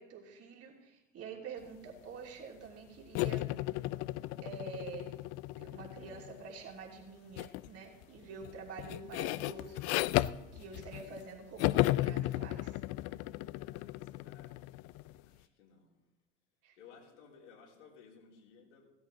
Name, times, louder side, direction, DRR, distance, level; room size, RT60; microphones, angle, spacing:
voice 1, 0.0-3.5 4.4-5.1 5.6-9.8 10.5-12.8 16.6-16.8, right 5 dB, 40° right, 0 dB, 3.2 m, -47 dB
sound 1, 3.2-6.5 7.4-7.7 8.0-11.3 11.6-15.1, left 18 dB, 45° left, 0.4 m, -35 dB
voice 2, 13.5-14.6 15.2-16.0 16.8-18.8, left 6 dB, 70° left, -2 dB, 3.6 m, -58 dB
16.5 x 12.5 x 4.0 m, 1.1 s
hypercardioid pair, 75°, 36 cm